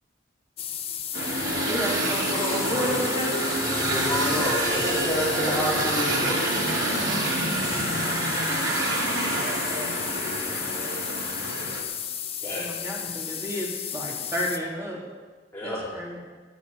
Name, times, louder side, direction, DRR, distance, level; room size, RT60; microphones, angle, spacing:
sound 1, 0.6-14.6, left 9 dB, 30° left, 0.7 m, -33 dB
sound 2, 1.1-11.8, right 2 dB, 80° right, 2.8 m, -27 dB
voice 1, 1.6-3.4 12.5-15.0 15.6-16.2, equal, 15° right, -4 dB, 2.9 m, -32 dB
voice 2, 3.7-6.4 12.4-12.7 15.5-15.9, left 1 dB, 10° left, -8 dB, 3.4 m, -29 dB
voice 3, 9.0-11.1, equal, 50° right, -3 dB, 5.4 m, -43 dB
17.0 x 11.0 x 5.5 m, 1.4 s
head